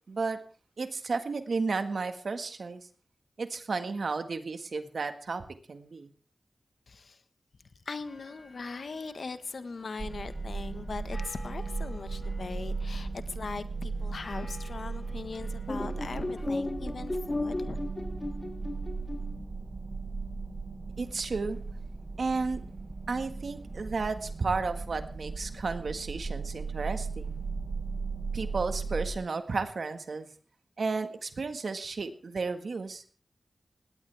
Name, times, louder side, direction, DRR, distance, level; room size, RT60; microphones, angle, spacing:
voice 1, 0.1-0.4 0.8-2.9 3.4-6.1 21.0-21.6 22.2-22.6 23.1-27.4 28.3-30.3 30.8-33.0, right 4 dB, 75° right, 9 dB, 1.7 m, -33 dB
voice 2, 6.9-7.2 7.8-17.8, left 4 dB, 75° left, 11 dB, 1.4 m, -40 dB
sound 1, 8.0-16.4, left 3 dB, 50° left, 6.7 m, -53 dB
sound 2, 10.0-29.1, right 4 dB, 55° right, 1.0 m, -37 dB
sound 3, 15.7-19.3, left 2 dB, 30° left, 1.1 m, -35 dB
19.0 x 18.0 x 3.5 m, 0.38 s
wide cardioid pair, 65°, 0 cm